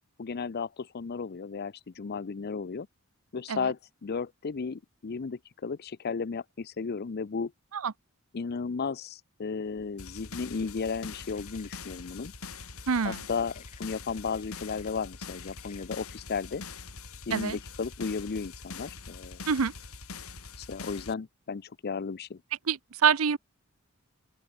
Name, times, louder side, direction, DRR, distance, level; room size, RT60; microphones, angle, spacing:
voice 1, 0.2-2.9 3.3-7.5 8.3-12.3 13.0-16.6 17.3-19.4 20.6-22.4, left 5 dB, 50° left, 0.5 m, -34 dB
sound 1, 9.6-17.0, left 5 dB, 35° left, 5.7 m, -63 dB
sound 2, 10.0-21.1, left 4 dB, 85° left, 3.2 m, -44 dB
voice 2, 12.9-13.2 17.3-17.6 19.5-19.7 22.7-23.4, right 6 dB, 75° right, 0.7 m, -26 dB
open air
head